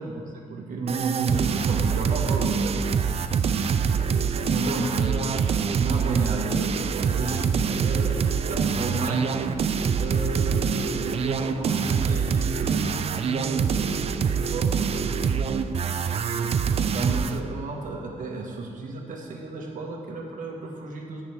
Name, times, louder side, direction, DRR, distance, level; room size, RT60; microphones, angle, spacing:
voice 1, 0.0-3.2 4.5-5.3 5.6-15.2 16.2-21.2, right 2 dB, 70° right, 0 dB, 1.7 m, -33 dB
sound 1, 0.9-17.4, right 6 dB, 45° right, 0.5 m, -25 dB
17.5 x 6.6 x 3.6 m, 2.3 s
cardioid pair, 105°, 14 cm